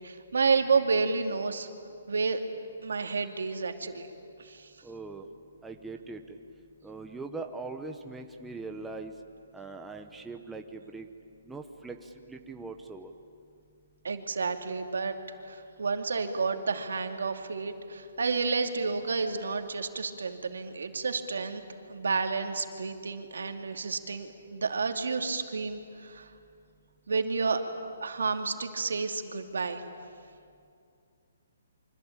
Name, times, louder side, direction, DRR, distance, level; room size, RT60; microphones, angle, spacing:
voice 1, 0.0-1.7 2.1-2.4 2.8-4.1 4.4-4.7 14.0-15.1 15.5-21.6 21.9-26.3 27.1-27.7 28.0-29.8, right 4 dB, 85° right, 5 dB, 2.6 m, -30 dB
voice 2, 4.8-5.3 5.6-6.4 6.8-9.1 9.5-11.1 11.4-13.1, right 3 dB, 5° right, 4 dB, 0.9 m, -41 dB
27.0 x 24.5 x 8.9 m, 2.4 s
hypercardioid pair, 165°, 0 cm